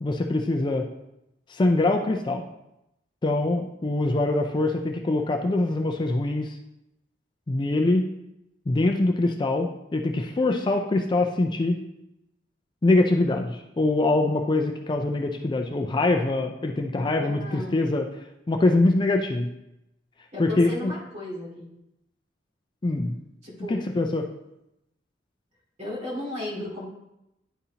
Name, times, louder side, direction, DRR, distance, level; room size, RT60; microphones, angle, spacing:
voice 1, 0.0-0.9 1.5-2.5 3.2-6.6 7.5-8.1 8.7-11.8 12.8-18.0 18.5-19.5 20.4-20.9 22.8-23.2 23.7-24.3, left 2 dB, 25° left, 4 dB, 0.4 m, -23 dB
voice 2, 17.2-17.9 20.3-21.6 23.4-23.8 25.8-26.9, left 1 dB, 40° right, -5 dB, 2.4 m, -34 dB
10.0 x 4.1 x 2.8 m, 0.86 s
head